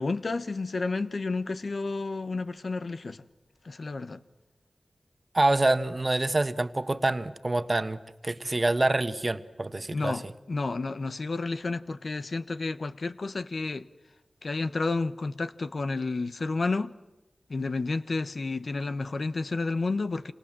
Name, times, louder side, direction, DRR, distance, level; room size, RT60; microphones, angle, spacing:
voice 1, 0.0-3.2 3.6-4.2 9.9-13.9 14.4-16.9 17.5-20.3, left 3 dB, 65° left, 1.1 m, -31 dB
voice 2, 5.3-10.2, right 2 dB, 35° right, 1.4 m, -26 dB
28.5 x 27.0 x 7.6 m
cardioid pair, 50°, 0 cm